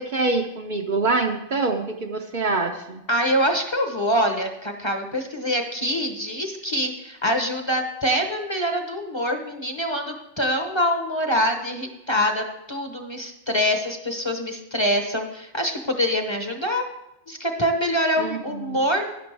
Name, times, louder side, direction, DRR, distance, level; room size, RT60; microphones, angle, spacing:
voice 1, 0.0-3.0 18.2-18.8, right 3 dB, 50° right, 3 dB, 0.8 m, -25 dB
voice 2, 3.1-16.8 17.3-19.1, equal, 25° left, 4 dB, 0.9 m, -25 dB
12.0 x 10.0 x 3.4 m, 0.90 s
omnidirectional pair, 1.2 m